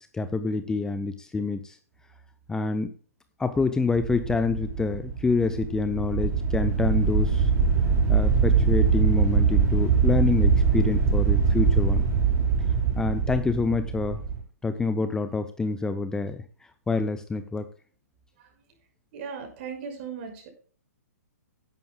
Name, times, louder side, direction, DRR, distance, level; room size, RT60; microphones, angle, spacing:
voice 1, 0.1-1.8 2.5-2.9 3.4-7.5 8.1-12.0 13.0-14.2 14.6-16.4 16.9-17.6, left 4 dB, 5° left, 10 dB, 0.6 m, -27 dB
sound 1, 3.9-14.4, right 5 dB, 25° right, 4.9 m, -23 dB
voice 2, 19.1-20.5, right 6 dB, 40° right, 3 dB, 5.8 m, -37 dB
16.0 x 11.0 x 2.3 m, 0.43 s
figure-of-eight pair, 125°, 9 cm